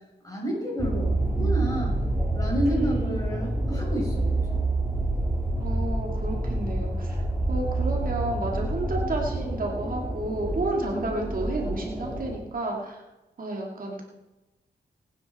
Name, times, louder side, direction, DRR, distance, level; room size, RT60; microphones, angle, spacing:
voice 1, 0.2-2.0 2.3-4.6, right 1 dB, 20° left, -3 dB, 6.2 m, -30 dB
sound 1, 0.8-12.4, right 2 dB, 5° right, 2.5 m, -28 dB
voice 2, 2.7-3.3 5.6-13.0 13.4-14.0, right 2 dB, 55° right, -1 dB, 2.5 m, -31 dB
21.5 x 9.5 x 4.4 m, 1.0 s
wide cardioid pair, 105°, 18 cm